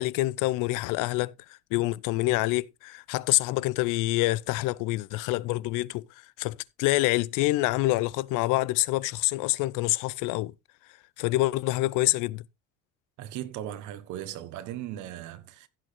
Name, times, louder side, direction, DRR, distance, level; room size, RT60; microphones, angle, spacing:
voice 1, 0.0-1.3 1.7-6.0 6.4-10.5 11.2-12.4, left 19 dB, 85° left, 0.6 m, -26 dB
voice 2, 13.2-15.7, right 12 dB, 75° right, 1.3 m, -38 dB
15.5 x 6.4 x 3.4 m
cardioid pair, 150°, 30 cm